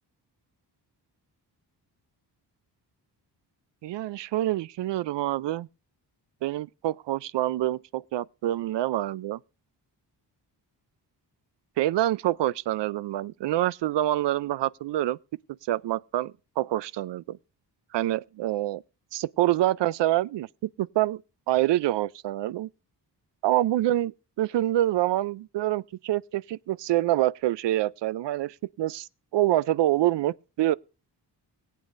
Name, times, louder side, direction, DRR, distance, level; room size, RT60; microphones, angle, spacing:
voice 1, 3.8-5.7 6.4-9.4 11.8-15.2 15.7-17.4 17.9-18.8 19.1-21.2 21.5-22.7 23.4-30.7, right 14 dB, 90° right, 0.5 m, -26 dB
21.0 x 8.5 x 2.6 m
wide cardioid pair, 165°, 42 cm